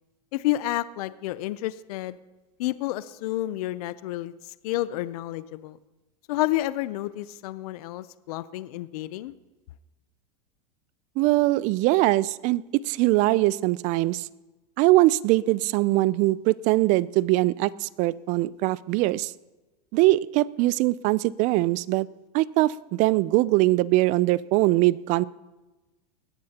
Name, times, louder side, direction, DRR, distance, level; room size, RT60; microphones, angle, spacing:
voice 1, 0.3-2.2 2.6-5.8 6.3-9.3, left 15 dB, 70° left, 15 dB, 0.6 m, -30 dB
voice 2, 11.2-14.3 14.8-19.3 19.9-22.1 22.3-25.3, right 18 dB, 40° right, 20 dB, 0.4 m, -22 dB
20.0 x 14.5 x 2.9 m, 1.1 s
supercardioid pair, 140°, 20 cm